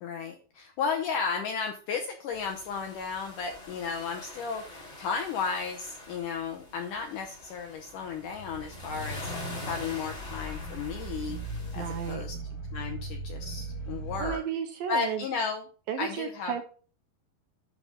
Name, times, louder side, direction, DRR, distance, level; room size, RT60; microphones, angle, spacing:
voice 1, 0.0-11.4 11.7-12.3 12.7-14.4 14.9-15.6 16.0-16.5, left 5 dB, 75° left, 3 dB, 1.9 m, -34 dB
sound 1, 2.3-12.1, left 1 dB, 15° left, 2.0 m, -45 dB
sound 2, 8.3-14.4, right 1 dB, 50° left, 3.4 m, -38 dB
voice 2, 11.8-12.3 14.2-15.3 15.9-16.6, right 8 dB, 80° right, 6 dB, 2.2 m, -33 dB
11.0 x 3.9 x 5.0 m, 0.40 s
omnidirectional pair, 4.7 m